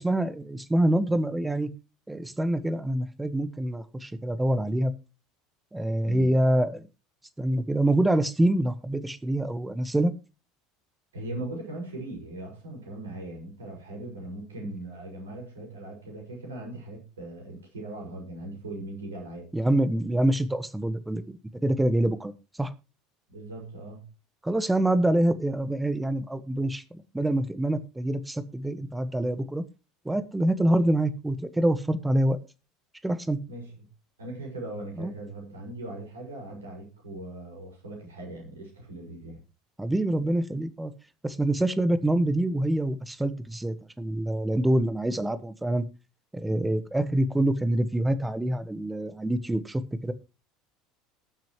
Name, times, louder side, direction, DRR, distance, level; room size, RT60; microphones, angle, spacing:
voice 1, 0.0-1.7 2.1-4.9 5.7-6.9 7.4-10.1 19.5-21.2 21.6-22.3 22.6-22.7 24.4-26.8 27.1-29.6 30.0-32.4 33.0-33.4 35.0-35.1 39.8-40.9 41.2-45.8 46.3-50.1, right 1 dB, 10° right, 14 dB, 1.3 m, -26 dB
voice 2, 11.1-19.5 23.3-24.1 30.6-30.8 33.5-33.7 34.2-39.4, right 1 dB, 75° right, 0 dB, 5.7 m, -39 dB
19.5 x 7.5 x 3.1 m, 0.30 s
figure-of-eight pair, 70°, 0 cm